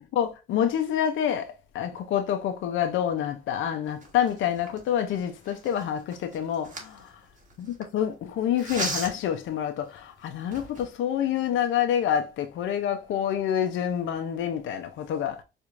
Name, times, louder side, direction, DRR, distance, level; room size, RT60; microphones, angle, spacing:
voice 1, 0.0-1.5 1.7-7.1 7.6-7.7 7.9-15.4, left 9 dB, 80° left, 0.6 m, -27 dB
sound 1, 3.9-7.8 8.6-9.4 10.0-10.1 10.4-10.9, right 3 dB, 40° right, 1.4 m, -37 dB
4.5 x 2.6 x 2.5 m
cardioid pair, 90°, 20 cm